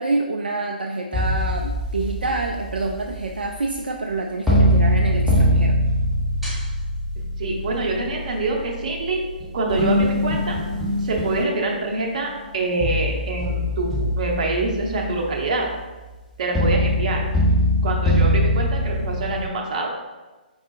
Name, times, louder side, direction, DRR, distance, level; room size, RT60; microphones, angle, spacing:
voice 1, 0.0-5.8, right 3 dB, 70° right, 2 dB, 0.3 m, -27 dB
sound 1, 1.1-4.2 4.5-12.0 12.8-19.5, equal, ahead, 0.8 m, -23 dB
voice 2, 7.4-9.2 9.5-10.6 11.0-15.7 16.4-17.2 17.8-19.9, right 2 dB, 45° right, 0 dB, 0.8 m, -25 dB
4.7 x 3.8 x 2.4 m, 1.2 s
figure-of-eight pair, 130°, 5 cm